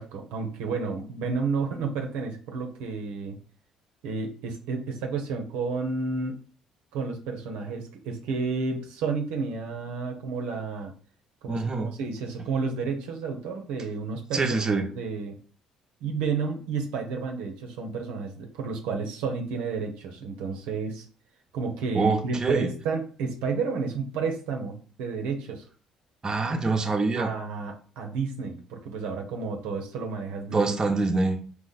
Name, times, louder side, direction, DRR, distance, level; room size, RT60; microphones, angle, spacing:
voice 1, 0.0-3.4 4.0-6.4 6.9-10.9 11.4-15.3 16.0-21.1 21.5-25.6 27.1-30.6, right 4 dB, 80° right, 3 dB, 0.8 m, -31 dB
voice 2, 11.5-11.9 14.3-14.8 21.9-22.7 26.2-27.3 30.5-31.4, right 3 dB, 30° right, 4 dB, 0.9 m, -25 dB
4.1 x 2.9 x 4.0 m, 0.40 s
hypercardioid pair, 60°, 2 cm